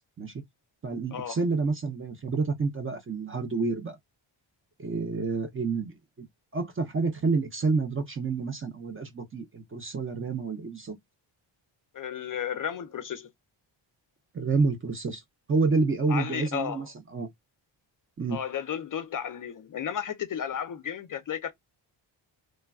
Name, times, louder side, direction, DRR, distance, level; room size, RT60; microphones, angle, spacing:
voice 1, 0.8-4.0 4.8-5.9 6.5-11.0 14.3-15.2 15.5-16.9 17.1-17.3 18.2-18.4, right 4 dB, 30° right, 0.5 m, -28 dB
voice 2, 11.9-13.3 16.1-16.9 18.3-21.5, left 8 dB, 45° left, 0.4 m, -33 dB
3.1 x 2.2 x 2.2 m
wide cardioid pair, 130°, 47 cm